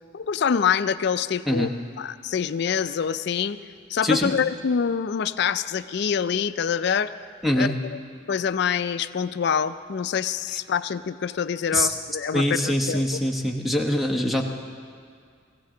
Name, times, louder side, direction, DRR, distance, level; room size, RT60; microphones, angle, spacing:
voice 1, 0.1-1.7 2.0-3.6 3.9-7.1 7.5-7.7 8.3-13.1, left 7 dB, 55° left, 13 dB, 0.4 m, -25 dB
voice 2, 12.3-14.4, left 1 dB, ahead, 2 dB, 1.0 m, -23 dB
20.0 x 16.0 x 3.8 m, 2.2 s
head